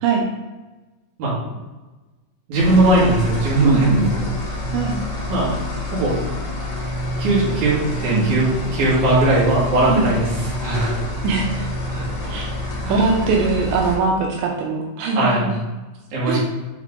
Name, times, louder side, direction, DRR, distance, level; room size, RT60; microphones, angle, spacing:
sound 1, 2.5-14.0, left 1 dB, 65° left, 2.2 m, -27 dB
voice 1, 2.5-4.6 5.3-5.6 5.9-6.2 7.2-11.1 11.9-12.1 12.8-13.0 15.1-15.5 16.1-16.4, right 1 dB, 50° right, -7 dB, 2.6 m, -19 dB
voice 2, 3.6-4.1 4.7-5.0 8.1-8.3 9.9-10.1 11.2-11.7 12.3-12.5 12.9-15.6 16.3-16.4, right 4 dB, 85° right, 0 dB, 2.4 m, -21 dB
8.5 x 3.6 x 3.7 m, 1.2 s
omnidirectional pair, 5.8 m